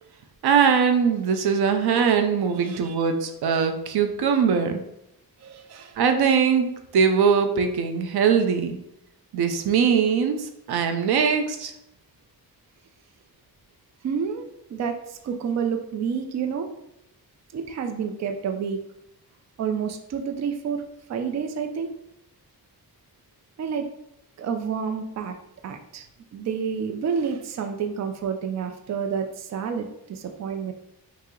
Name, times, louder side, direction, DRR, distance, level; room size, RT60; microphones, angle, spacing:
voice 1, 0.4-4.8 6.0-8.8 9.3-11.7, right 6 dB, 90° right, 6 dB, 0.6 m, -21 dB
voice 2, 2.6-2.9 5.4-6.0 14.0-16.7 17.5-18.8 19.6-20.8 21.1-21.9 23.6-23.9 24.4-25.3 25.6-26.0 26.3-30.7, right 6 dB, 45° right, 6 dB, 0.4 m, -29 dB
5.4 x 2.1 x 3.7 m, 0.80 s
wide cardioid pair, 165°, 37 cm